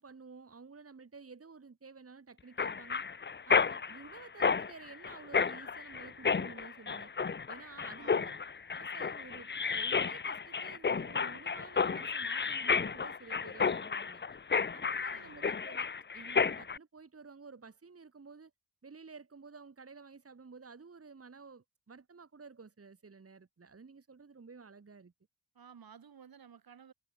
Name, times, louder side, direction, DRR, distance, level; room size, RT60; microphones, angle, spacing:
voice 1, 0.0-3.0 3.5-7.1 7.5-8.3 8.7-14.2 14.7-18.5 18.8-25.1, right 4 dB, 40° right, 2.1 m, -52 dB
Mechanisms, 2.6-16.8, left 5 dB, 30° left, 0.7 m, -32 dB
voice 2, 8.0-8.5 13.4-13.5 15.0-15.5 25.5-26.9, right 7 dB, 75° right, 3.9 m, -56 dB
cardioid pair, 60°, 37 cm